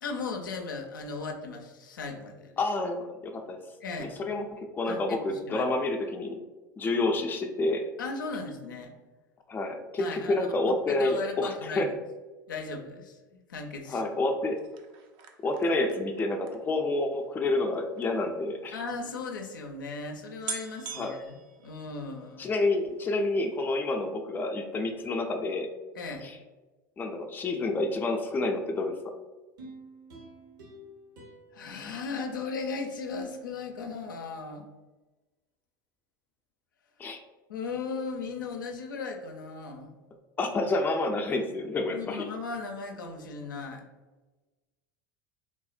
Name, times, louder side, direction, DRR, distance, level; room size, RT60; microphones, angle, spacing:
voice 1, 0.0-2.6 3.8-4.1 4.9-5.7 8.0-8.9 10.0-10.5 10.9-11.9 12.5-14.0 18.7-21.4 21.6-22.5 25.9-26.2 31.5-34.7 37.5-40.0 41.9-43.9, left 4 dB, 80° left, 3 dB, 0.4 m, -37 dB
voice 2, 2.6-3.6 4.0-6.4 6.8-7.8 9.5-11.9 13.9-14.6 15.4-18.8 20.9-21.2 22.4-25.7 27.0-28.9 37.0-37.2 40.4-42.3, left 2 dB, 20° left, 4 dB, 0.4 m, -29 dB
sound 1, 14.5-18.1 19.0-19.1 19.2-19.3 20.0-20.1 20.4-22.4 22.8-23.2 23.4-23.5, right 6 dB, 50° right, 0.4 m, -43 dB
sound 2, 29.6-32.9 33.3-33.4, right 1 dB, 70° right, 0.8 m, -50 dB
3.3 x 2.0 x 2.4 m, 1.2 s
hypercardioid pair, 80°, 11 cm